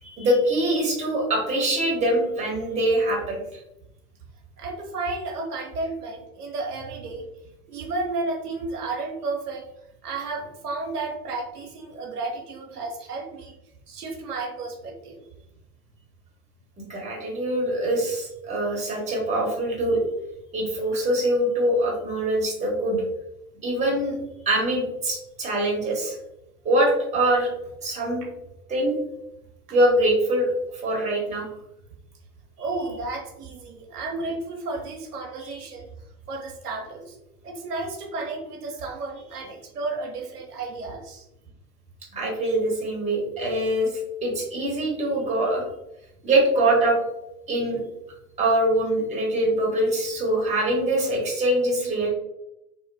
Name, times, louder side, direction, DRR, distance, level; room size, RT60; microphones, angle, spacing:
voice 1, 0.0-3.4 16.8-20.0 20.5-23.0 23.6-24.1 24.5-26.1 26.6-27.5 27.8-28.2 28.7-29.0 29.7-30.5 30.8-31.4 35.4-35.6 42.1-43.9 44.2-45.6 46.2-47.0 47.5-47.8 48.4-52.1, right 1 dB, 15° right, -2 dB, 0.9 m, -23 dB
voice 2, 4.6-7.3 7.7-9.7 10.0-13.5 13.9-15.2 32.6-35.9 36.3-37.2 37.4-41.2, right 3 dB, 90° right, 1 dB, 0.7 m, -32 dB
2.8 x 2.2 x 2.5 m, 0.86 s
hypercardioid pair, 95°, 45 cm